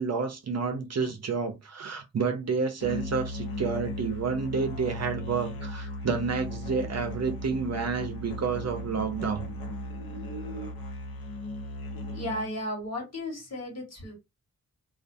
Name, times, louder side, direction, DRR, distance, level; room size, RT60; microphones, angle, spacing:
voice 1, 0.0-9.4, right 5 dB, 50° right, 0.6 m, -30 dB
Musical instrument, 2.8-12.6, left 1 dB, 85° left, 0.8 m, -37 dB
voice 2, 12.1-14.1, left 1 dB, 50° left, 1.3 m, -34 dB
2.4 x 2.3 x 2.5 m
wide cardioid pair, 105°, 34 cm